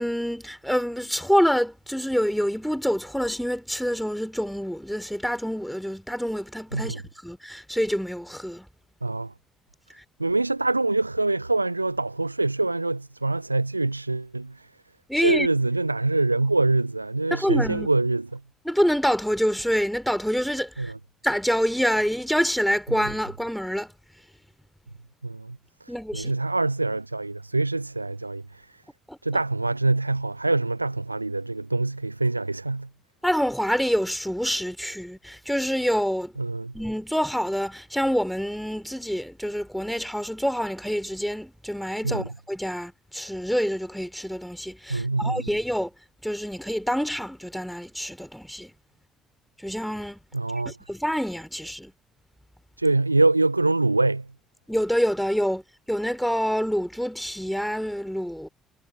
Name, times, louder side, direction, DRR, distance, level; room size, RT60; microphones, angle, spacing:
voice 1, 0.0-8.7 15.1-15.5 17.3-17.9 18.6-20.9 21.2-23.9 25.9-26.3 29.1-29.2 33.2-36.4 36.7-45.9 46.2-48.7 49.6-50.2 50.7-51.9 54.7-55.6 55.9-58.5, equal, ahead, 5.8 m, -26 dB
voice 2, 9.0-9.3 10.2-14.7 15.2-18.4 20.8-21.0 25.2-25.6 25.8-28.7 29.2-32.9 36.4-36.7 42.0-42.3 44.9-45.5 50.3-50.8 52.8-54.3, right 2 dB, 90° right, 0.4 m, -25 dB
figure-of-eight pair, 50°, 0 cm